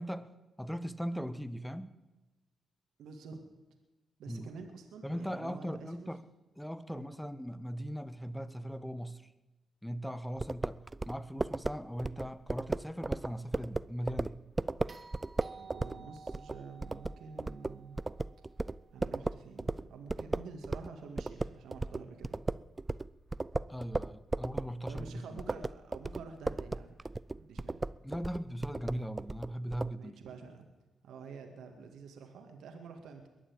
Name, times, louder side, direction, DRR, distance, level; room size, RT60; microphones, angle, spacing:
voice 1, 0.0-1.9 4.3-4.5 5.0-6.2 6.6-9.3 9.8-14.4 23.7-25.4 28.0-30.2, equal, 5° left, 13 dB, 1.2 m, -39 dB
voice 2, 3.0-3.4 4.2-6.1 6.9-7.0 15.5-18.0 18.9-22.4 24.9-27.8 30.0-30.7 31.0-33.3, right 5 dB, 80° right, 5 dB, 2.0 m, -48 dB
sound 1, 10.4-20.9 21.2-29.9, right 2 dB, 25° right, 0.5 m, -36 dB
sound 2, 14.9-19.1 21.4-21.5, right 4 dB, 45° right, 1.8 m, -54 dB
21.5 x 7.4 x 8.7 m, 1.1 s
supercardioid pair, 50°, 0 cm